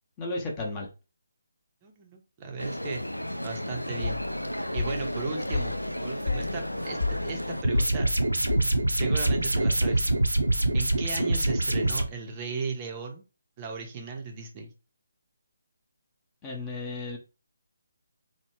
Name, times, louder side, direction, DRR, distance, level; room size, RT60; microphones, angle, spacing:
voice 1, 0.2-0.9 16.4-17.2, left 2 dB, 20° left, 0.6 m, -33 dB
voice 2, 1.8-3.0 3.4-4.2 4.7-5.8 6.0-8.1 9.0-10.1 10.7-13.2 13.6-14.7, right 4 dB, 25° right, 0.6 m, -36 dB
sound 1, 2.6-7.6, equal, 90° left, 0.3 m, -33 dB
sound 2, 4.0-9.8, left 3 dB, 70° left, 0.8 m, -33 dB
sound 3, 7.6-12.0, right 2 dB, 85° right, 0.5 m, -25 dB
2.9 x 2.1 x 2.9 m
figure-of-eight pair, 145°, 0 cm